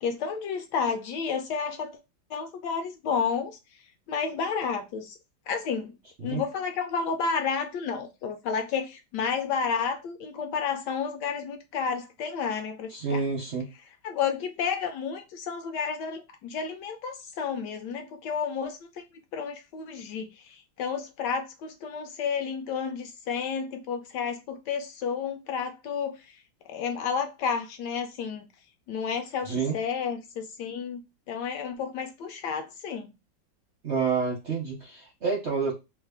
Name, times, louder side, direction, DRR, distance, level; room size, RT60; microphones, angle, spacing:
voice 1, 0.0-2.0 2.3-3.6 4.1-5.2 5.5-5.9 6.2-13.2 14.0-18.8 19.3-26.2 26.7-28.5 28.9-31.0 31.3-33.1, left 6 dB, 75° left, 1.0 m, -31 dB
voice 2, 12.9-13.7 29.4-29.7 33.8-35.8, right 5 dB, 60° right, 0.7 m, -28 dB
3.2 x 2.4 x 3.5 m
omnidirectional pair, 2.1 m